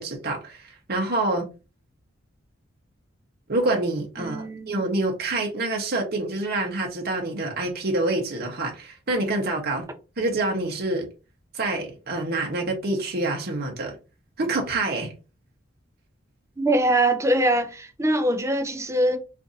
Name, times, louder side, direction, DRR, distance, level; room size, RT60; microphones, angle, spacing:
voice 1, 0.0-1.5 3.5-9.8 10.2-11.1 11.5-14.0 14.4-15.1, right 2 dB, 50° right, 0.8 m, -27 dB
voice 2, 4.2-4.7 16.6-19.2, right 1 dB, 15° right, 0.5 m, -23 dB
2.6 x 2.5 x 3.8 m
head